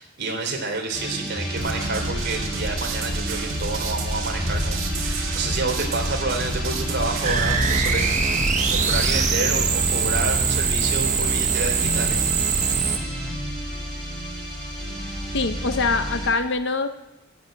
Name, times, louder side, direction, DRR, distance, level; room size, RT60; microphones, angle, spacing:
voice 1, 0.0-8.1 8.7-12.3, right 3 dB, 55° right, 2 dB, 3.2 m, -29 dB
sound 1, 0.9-16.4, equal, 5° left, 5.9 m, -31 dB
sound 2, 1.6-9.3, right 2 dB, 75° right, 2.0 m, -29 dB
sound 3, 7.2-13.0, right 5 dB, 35° right, 1.2 m, -22 dB
voice 2, 15.3-16.9, left 4 dB, 60° left, 9 dB, 0.8 m, -23 dB
12.0 x 9.7 x 8.9 m, 0.98 s
head